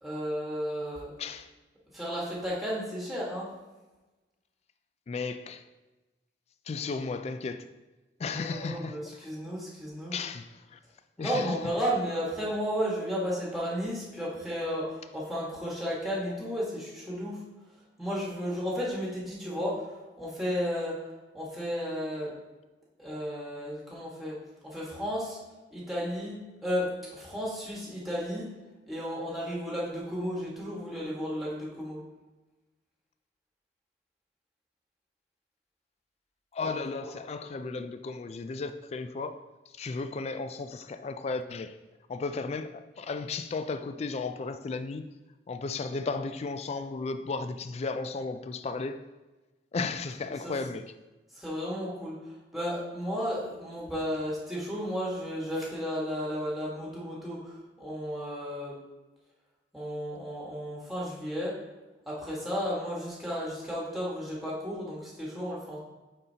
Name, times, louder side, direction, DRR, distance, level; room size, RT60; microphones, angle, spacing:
voice 1, 0.0-1.1 1.9-3.5 8.2-10.2 11.2-17.4 18.0-21.0 21.3-22.3 23.0-25.4 25.7-28.5 28.9-32.0 50.3-50.5 51.3-58.8 59.7-61.6 62.1-65.8, equal, ahead, 1.5 m, -33 dB
voice 2, 1.2-1.5 5.1-5.6 6.7-7.6 8.2-9.1 10.1-10.8 11.2-11.6 36.5-39.4 39.7-41.7 42.1-45.1 45.5-49.0 49.7-50.9, left 4 dB, 35° left, 0.3 m, -34 dB
8.9 x 4.1 x 2.8 m
head